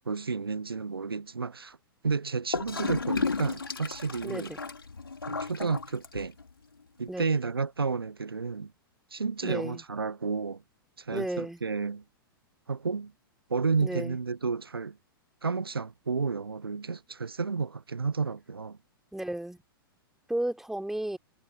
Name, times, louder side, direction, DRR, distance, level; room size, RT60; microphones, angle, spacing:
voice 1, 0.0-1.8 2.0-4.5 5.2-6.3 7.0-8.7 9.1-10.6 11.0-12.0 12.7-13.1 13.5-15.0 15.4-18.8, right 4 dB, 80° right, 1.0 m, -31 dB
Gurgling / Toilet flush, 2.5-6.5, left 4 dB, 75° left, 4.0 m, -33 dB
voice 2, 4.2-4.6 7.1-7.4 9.4-9.8 11.1-11.6 13.8-14.2 19.1-19.6 20.3-21.2, right 1 dB, 5° right, 3.0 m, -33 dB
figure-of-eight pair, 100°, 12 cm